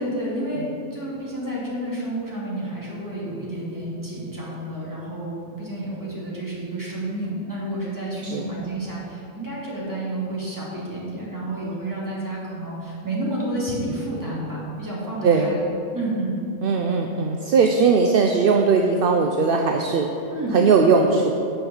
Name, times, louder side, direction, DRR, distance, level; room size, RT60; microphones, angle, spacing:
voice 1, 0.0-15.6 15.9-16.4 20.3-20.6, right 1 dB, 15° right, -7 dB, 2.4 m, -30 dB
voice 2, 15.2-15.6 16.6-20.1 20.5-21.4, right 5 dB, 60° right, 3 dB, 0.6 m, -19 dB
8.2 x 5.6 x 7.0 m, 2.7 s
omnidirectional pair, 1.4 m